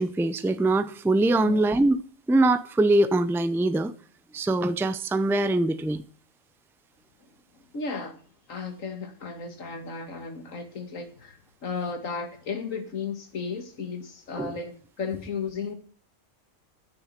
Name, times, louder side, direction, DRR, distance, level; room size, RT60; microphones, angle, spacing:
voice 1, 0.0-2.0 2.3-3.9 4.3-6.0 14.4-14.5, right 2 dB, 5° right, 0.4 m, -23 dB
voice 2, 7.5-8.2 8.5-15.7, left 5 dB, 90° left, 2.2 m, -34 dB
10.0 x 6.9 x 8.3 m
omnidirectional pair, 1.3 m